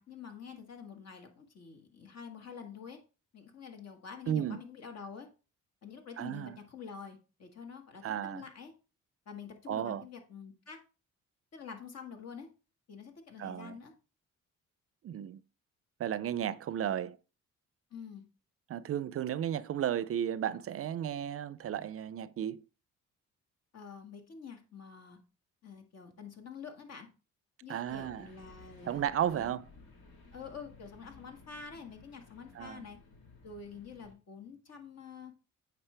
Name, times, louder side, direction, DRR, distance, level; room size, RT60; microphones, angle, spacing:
voice 1, 0.0-3.0 3.3-5.3 5.8-8.7 9.3-10.8 11.5-12.5 12.9-13.9 17.9-18.2 23.7-25.2 25.6-27.1 27.6-29.1 29.3-29.5 30.3-33.0 33.4-35.3, left 6 dB, 55° left, 1.8 m, -47 dB
voice 2, 4.3-4.6 6.2-6.6 8.0-8.5 9.7-10.0 13.4-13.7 15.0-15.4 16.0-17.2 18.7-22.6 27.7-28.3 28.9-29.7 32.5-32.9, right 10 dB, 50° right, 0.5 m, -34 dB
sound 1, 27.9-34.1, left 3 dB, 90° left, 1.8 m, -57 dB
8.8 x 5.1 x 3.3 m
cardioid pair, 90°, 30 cm